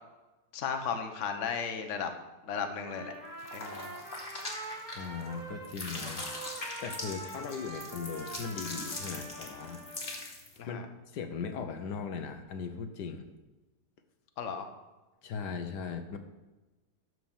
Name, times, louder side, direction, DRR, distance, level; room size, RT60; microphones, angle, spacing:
voice 1, 0.5-2.1 2.4-3.1 3.5-3.9 10.6-10.8 14.4-14.7, left 6 dB, 50° left, 6 dB, 1.2 m, -35 dB
Trumpet, 2.8-5.7 6.0-10.2, right 1 dB, 25° right, 1.7 m, -45 dB
sound 1, 3.4-5.3 5.6-10.6, left 2 dB, 30° left, 1.8 m, -41 dB
voice 2, 4.9-6.3 6.8-10.2 10.7-10.8 11.1-13.3 15.2-16.2, left 5 dB, 75° left, 7 dB, 1.5 m, -38 dB
12.5 x 4.7 x 7.2 m, 1.1 s
omnidirectional pair, 1.8 m